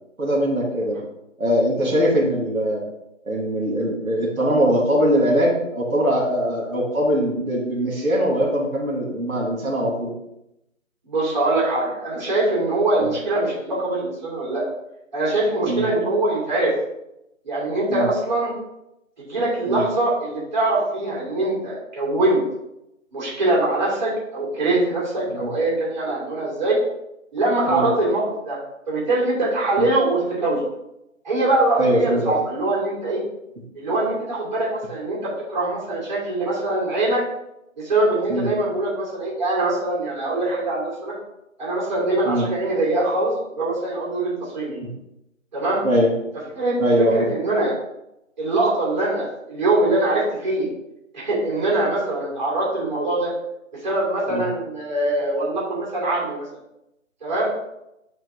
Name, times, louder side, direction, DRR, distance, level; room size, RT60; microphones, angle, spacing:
voice 1, 0.2-1.0 1.4-2.8 3.3-10.1 13.0-13.1 15.7-15.9 17.9-18.1 19.7-19.8 25.3-25.5 27.7-27.9 29.8-29.9 31.8-32.4 38.3-38.5 42.2-42.5 44.7-44.9 45.8-46.1 46.8-47.3 54.3-54.5, equal, 90° right, -3 dB, 2.5 m, -21 dB
voice 2, 11.0-14.6 15.1-16.7 17.4-18.6 19.2-22.4 23.1-26.8 27.3-28.6 28.9-30.7 31.2-33.2 33.7-37.2 37.8-41.1 41.6-44.8 45.5-45.8 46.6-46.8 47.1-47.8 48.4-50.7 51.1-53.3 53.8-56.5 57.2-57.5, right 2 dB, 35° right, -5 dB, 2.9 m, -23 dB
9.0 x 4.5 x 3.6 m, 0.86 s
figure-of-eight pair, 170°, 41 cm